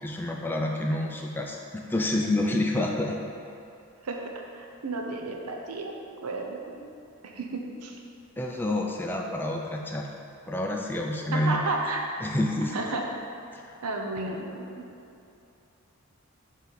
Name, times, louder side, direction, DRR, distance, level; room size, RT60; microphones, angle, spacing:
voice 1, 0.0-3.2 8.4-10.1 10.5-11.6 12.2-12.8 13.5-13.6, left 1 dB, 10° left, 0 dB, 0.3 m, -28 dB
voice 2, 4.0-5.9 6.2-6.8 7.2-8.0 11.3-12.1 12.7-13.2 13.8-14.8, right 2 dB, 90° right, 1 dB, 0.7 m, -32 dB
6.3 x 4.1 x 4.0 m, 2.7 s
head